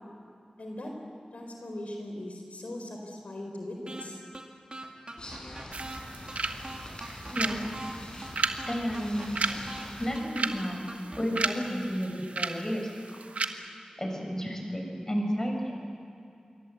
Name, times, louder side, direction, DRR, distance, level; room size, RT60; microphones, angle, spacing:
voice 1, 0.6-0.9 1.3-4.2, left 1 dB, 75° left, 2 dB, 4.3 m, -39 dB
sound 1, 3.9-4.0 4.3-4.4 4.7-6.0 6.3-6.4 6.6-7.9 8.2-8.3 8.6-9.8 10.1-10.2 10.5-11.4, right 2 dB, 45° right, 3.4 m, -41 dB
sound 2, 5.2-10.2, left 1 dB, 40° left, 5.5 m, -44 dB
sound 3, 5.7-13.5, right 3 dB, 85° right, 1.3 m, -35 dB
voice 2, 7.3-7.8 8.6-9.7 10.0-10.9 11.2-13.2 14.0-15.8, equal, 25° left, 2 dB, 6.3 m, -32 dB
27.5 x 23.0 x 8.1 m, 2.6 s
wide cardioid pair, 55°, 2 cm